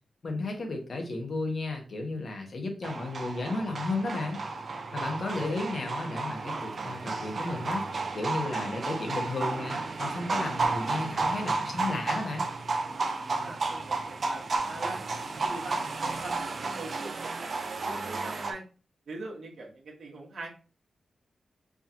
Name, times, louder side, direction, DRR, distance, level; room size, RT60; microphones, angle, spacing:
voice 1, 0.2-4.4 4.9-7.9 8.1-12.5, left 2 dB, 50° left, 3 dB, 1.1 m, -33 dB
sound 1, 2.8-18.5, right 3 dB, 45° right, 0.5 m, -32 dB
voice 2, 13.3-15.0 15.4-18.6 19.1-20.5, right 2 dB, 70° right, -2 dB, 1.1 m, -42 dB
4.7 x 2.9 x 2.7 m, 0.35 s
wide cardioid pair, 145°, 0 cm